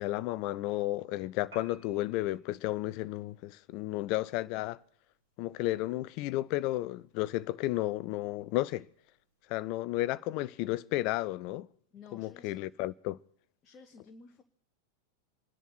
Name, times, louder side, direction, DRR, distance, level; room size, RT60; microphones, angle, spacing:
voice 1, 0.0-4.8 5.4-8.9 9.5-11.7 12.1-13.2, left 17 dB, 45° left, 0.5 m, -33 dB
Piano, 1.4-9.5, right 1 dB, 65° right, 4.3 m, -63 dB
voice 2, 11.9-12.6 13.6-14.4, left 5 dB, 25° left, 1.1 m, -53 dB
27.0 x 10.5 x 4.3 m
figure-of-eight pair, 90°, 0 cm